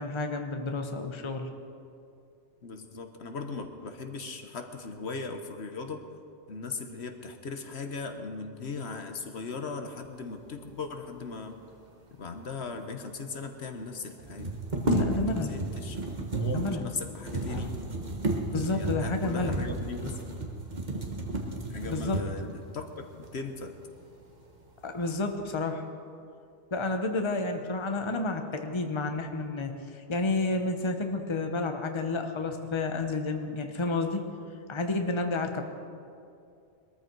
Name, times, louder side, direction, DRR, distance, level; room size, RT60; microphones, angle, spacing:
voice 1, 0.0-1.5 14.9-15.6 16.5-16.9 17.5-17.7 18.5-19.6 21.8-22.2 24.8-25.8 26.7-34.2 34.7-35.6, left 3 dB, 25° left, 5 dB, 1.0 m, -30 dB
voice 2, 2.6-6.0 6.5-11.6 12.1-14.5 15.0-17.7 18.7-20.2 21.7-23.7, left 4 dB, 70° left, 6 dB, 1.3 m, -38 dB
sound 1, 12.7-12.8 13.0-13.1 14.2-22.5 23.2-23.3 23.8-24.4 24.8-25.3, right 2 dB, 40° right, 1.7 m, -32 dB
21.0 x 14.0 x 4.6 m, 2.5 s
omnidirectional pair, 1.2 m